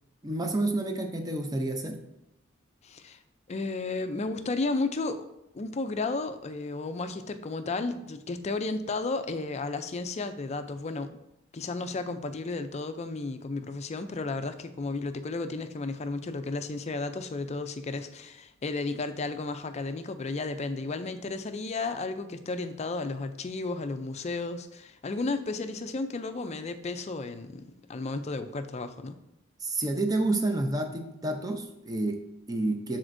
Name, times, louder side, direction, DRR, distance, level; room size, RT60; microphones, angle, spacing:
voice 1, 0.2-2.0 29.6-33.0, right 2 dB, 20° right, 5 dB, 0.6 m, -29 dB
voice 2, 2.8-3.2 3.5-5.3 5.5-11.1 11.5-29.2, left 3 dB, 30° left, 9 dB, 0.4 m, -33 dB
12.0 x 4.3 x 2.6 m, 0.86 s
head